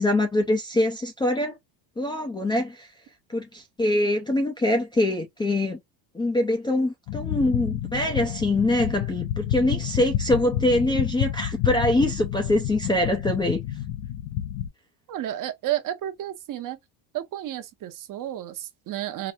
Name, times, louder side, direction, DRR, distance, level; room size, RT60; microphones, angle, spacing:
voice 1, 0.0-1.6 2.0-2.9 3.3-5.8 6.1-13.6, left 1 dB, 10° left, 0.5 m, -24 dB
sound 1, 7.1-14.7, left 11 dB, 70° left, 0.6 m, -29 dB
voice 2, 15.1-16.8 17.1-19.3, right 12 dB, 45° right, 0.8 m, -31 dB
4.8 x 2.0 x 2.6 m
cardioid pair, 135°, 47 cm